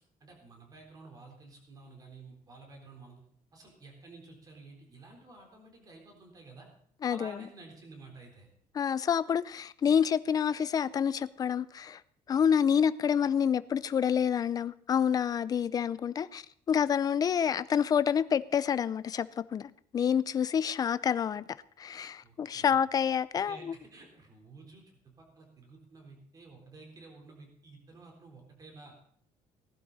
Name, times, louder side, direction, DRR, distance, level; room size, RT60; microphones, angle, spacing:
voice 1, 0.2-3.2 3.5-6.7 7.1-8.5 22.2-22.8 23.3-29.1, right 3 dB, 25° right, 3.9 m, -52 dB
voice 2, 7.0-7.3 8.8-12.0 12.3-21.4 21.8-23.7, left 8 dB, 25° left, 0.4 m, -28 dB
19.0 x 11.5 x 4.1 m
cardioid pair, 165°, 14 cm